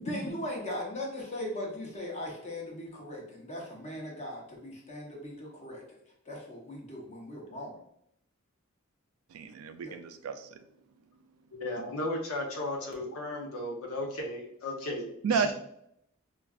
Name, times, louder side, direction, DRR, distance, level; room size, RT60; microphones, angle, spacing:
voice 1, 0.0-5.8 6.3-7.8 9.8-10.0, left 1 dB, 35° left, -2 dB, 0.9 m, -39 dB
voice 2, 9.3-10.5 15.2-15.5, right 6 dB, 85° right, 8 dB, 0.3 m, -31 dB
voice 3, 11.5-15.5, left 1 dB, 80° left, 0 dB, 0.8 m, -35 dB
4.4 x 2.4 x 2.4 m, 0.74 s
head